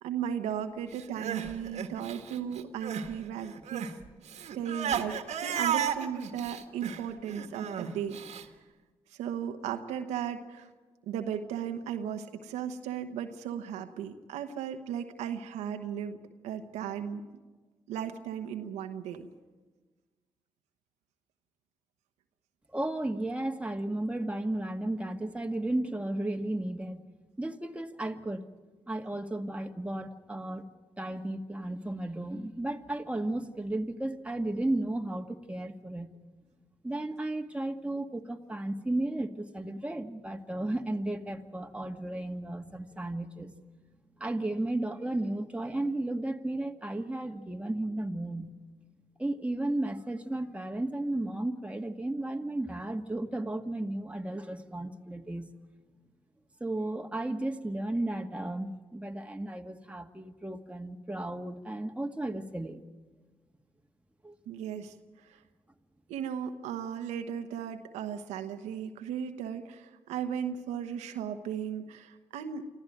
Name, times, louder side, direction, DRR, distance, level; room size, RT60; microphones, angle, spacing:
voice 1, 0.0-3.9 4.5-8.5 9.1-10.7 11.1-16.2 16.4-17.2 17.9-19.3 64.5-64.9 65.2-65.4 66.1-72.7, right 8 dB, 90° right, 6 dB, 1.1 m, -36 dB
Crying sobbing, 1.0-3.1 3.4-8.4, right 8 dB, 75° right, 1.6 m, -34 dB
voice 2, 22.7-27.0 27.4-28.4 28.9-30.7 31.0-36.1 36.8-43.6 44.2-48.5 49.2-55.5 56.6-62.8 64.2-64.4, right 1 dB, 10° right, 4 dB, 1.9 m, -34 dB
26.0 x 14.5 x 9.2 m, 1.3 s
supercardioid pair, 45°, 11 cm